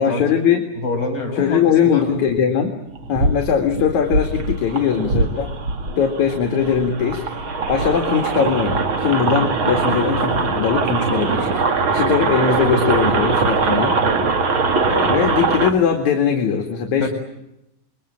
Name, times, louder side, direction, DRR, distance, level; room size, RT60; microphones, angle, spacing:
voice 1, 0.0-0.7 1.4-2.8 3.1-5.5 6.0-7.2 7.7-11.6 11.9-14.0 14.9-17.1, left 7 dB, 55° left, 4 dB, 3.2 m, -20 dB
voice 2, 0.8-2.0 16.9-17.1, left 2 dB, 30° left, 5 dB, 7.1 m, -26 dB
sound 1, 3.0-15.7, right 4 dB, 40° right, 2.3 m, -21 dB
27.5 x 23.0 x 8.7 m, 0.87 s
omnidirectional pair, 4.4 m